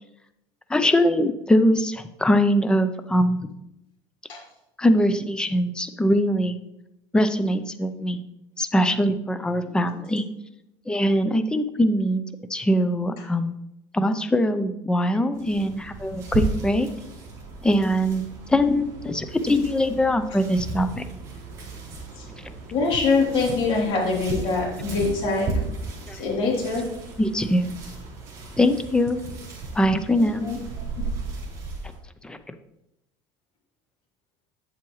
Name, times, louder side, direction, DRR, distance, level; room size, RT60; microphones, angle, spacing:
voice 1, 0.7-3.5 4.8-6.6 7.1-8.2 8.6-10.2 10.9-12.2 12.5-13.5 13.9-16.9 17.6-21.0 26.1-26.2 27.2-27.7 28.6-29.2 29.7-30.5 32.2-32.4, equal, 10° left, 10 dB, 0.5 m, -22 dB
sound 1, 15.3-32.0, right 3 dB, 30° right, 3.4 m, -35 dB
voice 2, 22.7-25.6 26.1-26.9 30.2-30.6, left 4 dB, 55° left, -2 dB, 3.0 m, -24 dB
8.4 x 7.5 x 3.1 m, 0.86 s
cardioid pair, 135°, 11 cm